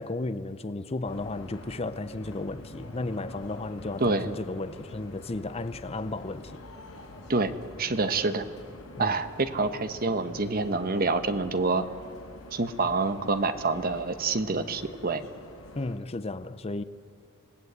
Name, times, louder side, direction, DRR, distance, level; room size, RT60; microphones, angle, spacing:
voice 1, 0.0-6.6 9.0-9.2 15.8-16.8, left 2 dB, 30° left, 0.6 m, -34 dB
sound 1, 1.0-16.0, left 1 dB, 80° left, 4.9 m, -46 dB
voice 2, 7.8-8.4 9.0-11.8 12.5-15.2, right 3 dB, 40° right, 1.0 m, -27 dB
27.0 x 18.0 x 8.1 m
head